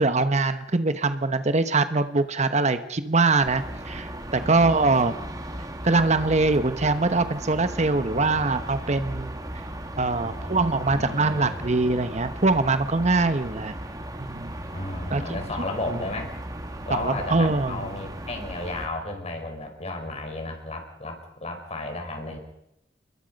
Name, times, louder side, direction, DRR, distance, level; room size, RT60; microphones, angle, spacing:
voice 1, 0.0-5.2 5.8-9.4 10.0-13.7 14.2-14.5 15.1-15.4 15.9-16.0 16.9-17.8, right 3 dB, 40° right, 11 dB, 1.0 m, -23 dB
sound 1, 3.4-18.9, right 1 dB, 20° right, 2.1 m, -36 dB
voice 2, 4.4-5.0 8.0-8.5 10.2-11.6 14.7-16.4 16.8-22.4, left 2 dB, 35° left, 4 dB, 4.7 m, -34 dB
30.0 x 22.0 x 5.3 m, 0.82 s
head